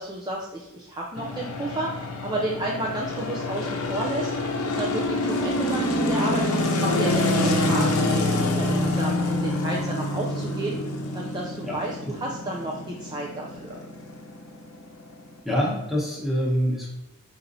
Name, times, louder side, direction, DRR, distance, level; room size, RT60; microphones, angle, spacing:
voice 1, 0.0-4.3 4.6-8.3 8.6-10.8 11.1-13.8, right 2 dB, 20° right, -2 dB, 0.4 m, -31 dB
sound 1, 1.2-15.4, left 2 dB, 90° left, 0.7 m, -26 dB
voice 2, 15.4-16.9, equal, ahead, -5 dB, 1.0 m, -25 dB
4.4 x 3.9 x 2.6 m, 0.91 s
head